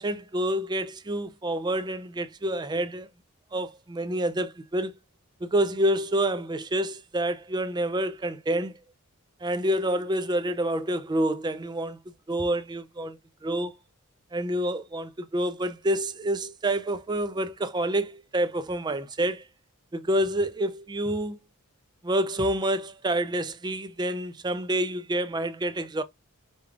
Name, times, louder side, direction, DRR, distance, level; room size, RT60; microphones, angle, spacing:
voice 1, 0.0-3.1 3.5-4.9 5.4-8.7 9.4-12.0 12.3-13.8 14.3-19.4 19.9-21.4 22.0-26.0, right 1 dB, 20° right, 0.4 m, -28 dB
5.2 x 2.4 x 3.3 m
head